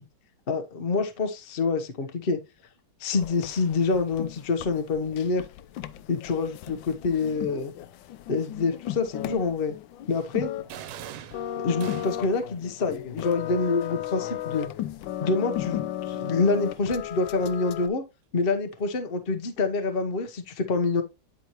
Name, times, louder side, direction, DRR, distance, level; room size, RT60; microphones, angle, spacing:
voice 1, 0.5-2.4 3.0-5.4 6.1-7.7 8.3-9.8 10.1-10.5 11.6-14.7 15.2-18.0 18.3-21.0, left 4 dB, 35° left, 1.0 m, -26 dB
sound 1, 3.1-17.9, left 12 dB, 75° left, 1.2 m, -35 dB
sound 2, 10.7-12.4, right 11 dB, 90° right, 1.6 m, -41 dB
10.0 x 4.5 x 3.0 m
omnidirectional pair, 2.3 m